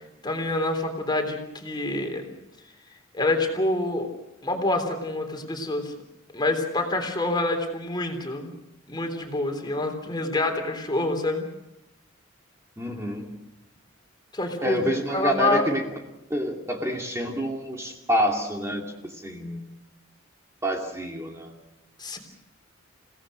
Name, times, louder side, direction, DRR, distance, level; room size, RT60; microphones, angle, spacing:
voice 1, 0.2-2.3 3.1-4.1 4.4-5.9 6.3-8.6 8.9-11.5 14.3-14.8 15.1-15.7 22.0-22.2, left 2 dB, 20° left, 4 dB, 3.5 m, -27 dB
voice 2, 12.8-13.3 14.6-15.8 16.3-19.7 20.6-21.5, equal, 15° right, 0 dB, 2.5 m, -27 dB
29.5 x 17.5 x 6.3 m, 0.89 s
head